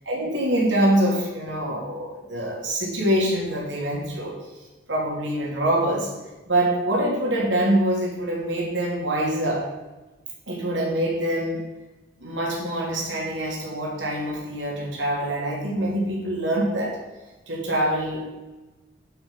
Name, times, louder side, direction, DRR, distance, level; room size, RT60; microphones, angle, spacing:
voice 1, 0.1-4.3 4.9-6.1 6.5-9.6 10.5-11.6 12.2-17.0 17.5-18.4, right 1 dB, 85° right, -2 dB, 3.4 m, -25 dB
11.5 x 6.3 x 5.8 m, 1.2 s
head